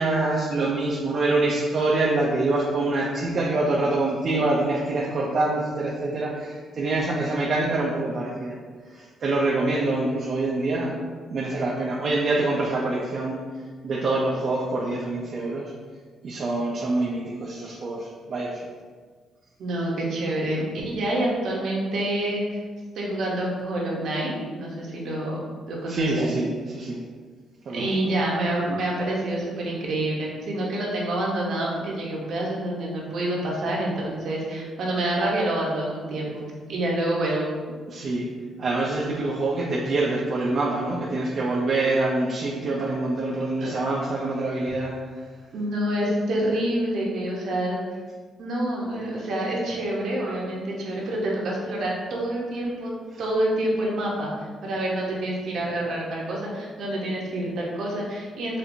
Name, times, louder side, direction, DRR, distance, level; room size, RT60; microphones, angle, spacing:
voice 1, 0.0-8.6 8.9-10.9 11.3-13.4 13.8-15.7 16.2-18.6 25.9-26.5 26.7-27.0 27.7-27.9 37.9-38.3 38.6-44.9 53.1-53.2, right 2 dB, 45° right, -4 dB, 0.4 m, -25 dB
voice 2, 19.6-22.6 23.0-25.4 25.7-26.3 27.7-37.6 43.6-43.7 45.5-47.8 48.4-52.9 53.2-54.3 54.6-58.6, right 1 dB, 60° right, -3 dB, 0.8 m, -27 dB
4.3 x 2.5 x 2.6 m, 1.5 s
cardioid pair, 140°, 0 cm